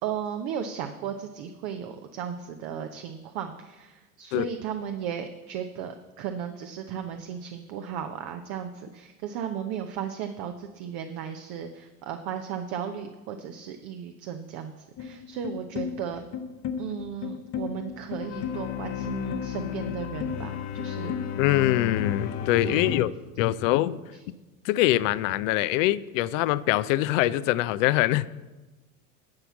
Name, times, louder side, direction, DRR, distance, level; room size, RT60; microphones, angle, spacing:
voice 1, 0.0-16.2 16.8-21.4 22.7-23.0 24.1-24.2, right 8 dB, 55° right, 6 dB, 0.9 m, -35 dB
sound 1, 15.0-23.0, left 8 dB, 40° left, 0.9 m, -33 dB
voice 2, 21.4-23.1 23.4-24.0 24.6-28.3, left 15 dB, 60° left, 17 dB, 0.6 m, -23 dB
11.5 x 5.7 x 7.2 m, 1.1 s
hypercardioid pair, 75°, 43 cm